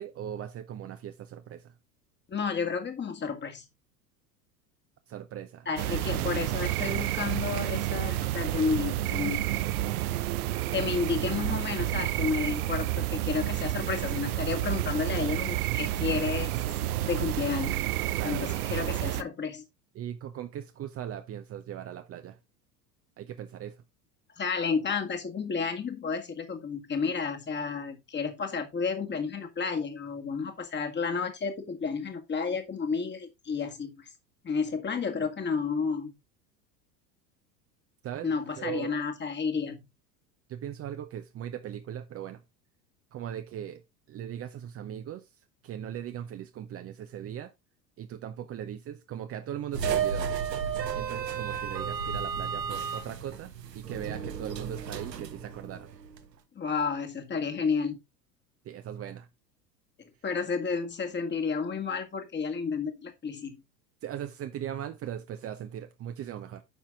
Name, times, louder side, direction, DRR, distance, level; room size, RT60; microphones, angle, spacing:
voice 1, 0.0-1.7 5.1-5.7 18.2-18.6 19.9-22.4 23.2-23.8 38.0-38.9 40.5-42.4 43.1-43.8 44.1-45.3 45.6-47.5 48.0-50.3 50.9-55.9 58.6-59.3 64.0-66.6, right 10 dB, 30° right, 0.9 m, -39 dB
voice 2, 2.3-3.7 5.7-9.5 10.7-16.5 17.0-17.9 18.2-19.6 24.4-34.1 34.4-36.1 38.2-39.9 56.6-58.0 60.2-63.6, left 5 dB, 20° left, 1.8 m, -31 dB
sound 1, 5.8-19.2, right 14 dB, 60° right, 0.8 m, -30 dB
sound 2, 49.7-56.2, right 7 dB, 75° right, 1.2 m, -33 dB
9.4 x 5.9 x 3.6 m
figure-of-eight pair, 80°, 50 cm